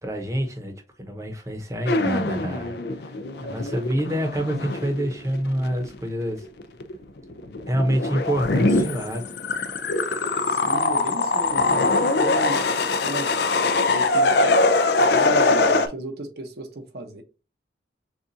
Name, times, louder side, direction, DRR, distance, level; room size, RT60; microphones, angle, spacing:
voice 1, 0.0-2.8 3.0-3.1 3.4-6.5 7.7-9.3, equal, 15° right, 0.9 m, -27 dB
sound 1, 1.9-6.0 6.3-6.9 7.3-15.9, left 3 dB, 65° left, 0.5 m, -22 dB
voice 2, 10.5-12.6 13.0-13.3 13.9-14.4 15.0-17.2, right 1 dB, 60° right, 0.9 m, -34 dB
6.7 x 2.5 x 2.7 m
head